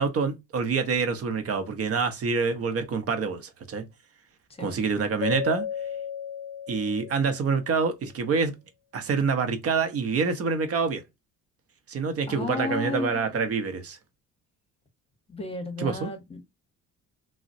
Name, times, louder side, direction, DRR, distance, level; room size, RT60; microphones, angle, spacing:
voice 1, 0.0-3.8 4.6-5.7 6.7-8.5 8.9-11.0 11.9-14.0 15.8-16.1, right 5 dB, 45° right, 0.7 m, -26 dB
Keyboard (musical), 5.2-7.7, left 9 dB, 65° left, 0.5 m, -34 dB
voice 2, 12.3-13.6 15.3-16.4, left 2 dB, 20° left, 0.9 m, -34 dB
3.7 x 2.1 x 2.5 m
cardioid pair, 100°, 32 cm